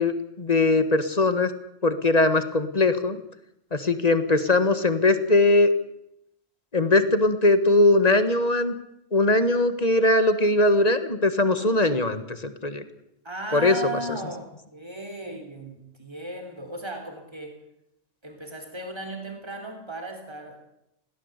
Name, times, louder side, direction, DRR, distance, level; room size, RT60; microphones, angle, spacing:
voice 1, 0.0-1.5 1.8-3.2 3.7-5.7 6.7-8.7 9.1-12.8 13.5-13.7, left 2 dB, 30° left, 11 dB, 1.7 m, -20 dB
voice 2, 11.4-11.8 13.2-17.5 18.2-20.6, right 2 dB, 20° right, 4 dB, 4.0 m, -36 dB
21.5 x 17.0 x 8.3 m, 0.80 s
omnidirectional pair, 1.3 m